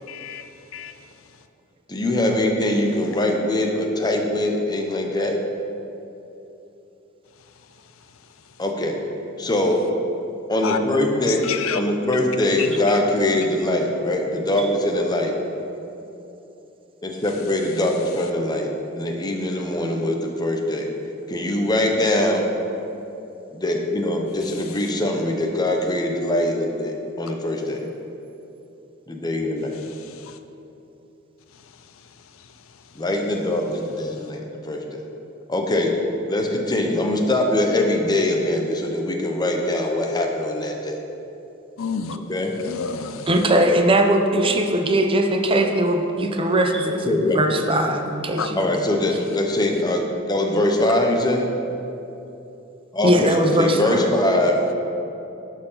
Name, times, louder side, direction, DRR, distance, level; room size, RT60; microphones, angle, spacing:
voice 1, 0.1-0.4 0.7-0.9 10.6-10.8 11.5-11.8 41.8-42.2 42.6-43.3 48.4-48.5, left 6 dB, 80° left, 9 dB, 0.5 m, -28 dB
voice 2, 1.9-5.4 8.6-9.0 9.4-9.8 10.5-11.4 11.7-15.3 17.0-18.7 19.0-20.9 21.3-22.5 23.5-27.8 29.1-29.8 33.0-35.0 35.5-35.9 36.3-41.0 42.3-42.5 47.0-47.4 48.5-51.5 52.9-54.6, left 1 dB, 20° left, 2 dB, 0.9 m, -22 dB
voice 3, 43.3-48.6 53.0-54.1, right 1 dB, 25° right, 4 dB, 0.6 m, -20 dB
11.5 x 4.7 x 5.6 m, 2.9 s
head